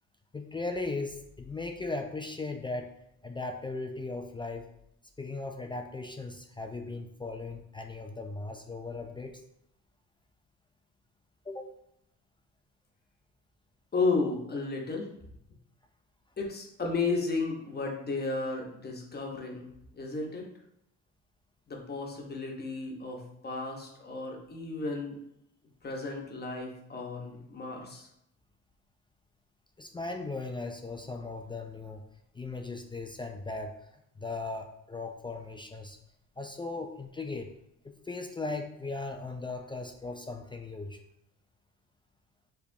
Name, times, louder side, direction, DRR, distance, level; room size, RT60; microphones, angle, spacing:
voice 1, 0.3-2.9 3.2-4.7 5.2-9.4 11.5-11.7 29.8-32.0 32.3-33.7 34.2-36.0 36.4-37.5 37.8-41.0, left 3 dB, 15° left, 4 dB, 0.4 m, -37 dB
voice 2, 13.9-15.1 16.4-19.7 19.9-20.5 21.7-25.2 25.8-28.1, left 3 dB, 35° left, 0 dB, 1.1 m, -33 dB
4.9 x 3.3 x 2.7 m, 0.77 s
cardioid pair, 90°, 30 cm